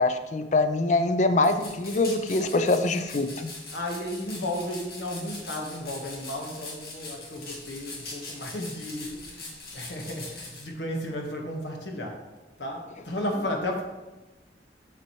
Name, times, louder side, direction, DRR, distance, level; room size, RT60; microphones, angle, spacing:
voice 1, 0.0-3.5, left 2 dB, 45° left, 9 dB, 0.5 m, -24 dB
sound 1, 1.4-10.6, left 3 dB, 60° left, 1.7 m, -42 dB
voice 2, 3.7-12.2 12.6-13.8, left 1 dB, 85° left, 1 dB, 1.4 m, -34 dB
7.0 x 6.6 x 3.1 m, 1.2 s
head